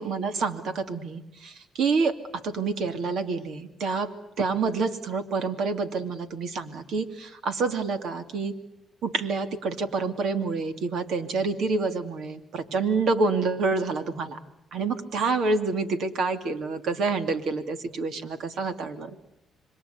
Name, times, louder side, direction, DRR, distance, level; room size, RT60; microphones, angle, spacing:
voice 1, 0.0-4.1 4.4-8.5 9.0-14.4 14.7-19.2, right 4 dB, 70° right, 9 dB, 2.7 m, -28 dB
27.5 x 24.5 x 8.2 m, 0.82 s
cardioid pair, 90°, 0 cm